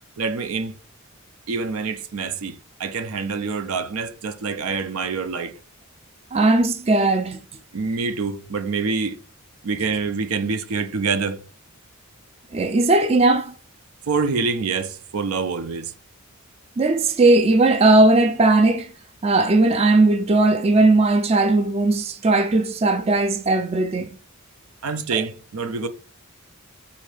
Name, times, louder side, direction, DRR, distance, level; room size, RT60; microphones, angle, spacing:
voice 1, 0.2-0.7 1.5-5.6 7.7-9.2 9.6-11.4 14.1-15.9 24.8-25.9, right 4 dB, 80° right, 0.5 m, -26 dB
voice 2, 6.3-7.4 12.5-13.5 16.8-18.9 19.2-24.1 25.1-25.2, right 2 dB, 30° right, 0.4 m, -18 dB
4.1 x 2.7 x 4.8 m
head